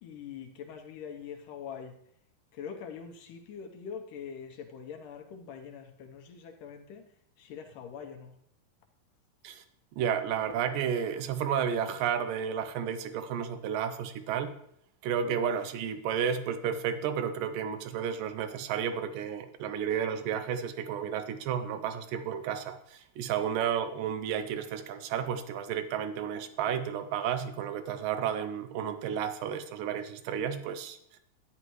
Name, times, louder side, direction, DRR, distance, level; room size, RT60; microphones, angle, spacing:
voice 1, 0.0-2.0 2.5-8.3, left 7 dB, 75° left, 2.4 m, -43 dB
voice 2, 10.0-14.5 15.0-31.0, right 8 dB, 85° right, 2.4 m, -32 dB
11.0 x 9.6 x 3.1 m
omnidirectional pair, 3.9 m